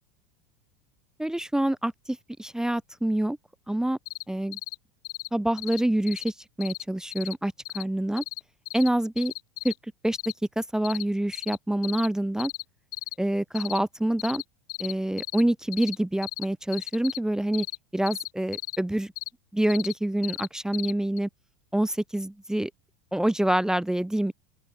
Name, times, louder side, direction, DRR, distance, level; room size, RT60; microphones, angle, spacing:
voice 1, 1.2-3.4 3.7-4.0 4.3-4.6 5.3-8.2 8.7-9.3 9.6-9.7 10.0-10.2 10.6-12.5 13.2-14.4 14.8-17.7 17.9-19.1 19.5-21.3 21.7-22.7 23.1-24.3, right 1 dB, 5° right, 0.7 m, -26 dB
sound 1, 4.1-4.2 4.5-4.7 5.0-5.3 5.6-5.8 6.1-6.3 6.6-6.8 7.1-7.3 7.6-7.8 8.2-8.4 8.7-8.9 9.2-9.7 10.1-10.3 10.8-11.0 11.3-11.6 11.8-12.1 12.4-12.6 12.9-13.1 13.5-13.8 14.2-14.4 14.7-14.9 15.2-15.4 15.7-16.0 16.2-16.4 16.7-17.2 17.5-17.8 18.1-18.8 19.2-19.3 19.7-19.9 20.2-20.5 20.7-20.9 21.2-21.3, left 23 dB, 50° left, 4.6 m, -35 dB
open air
supercardioid pair, 130°, 19 cm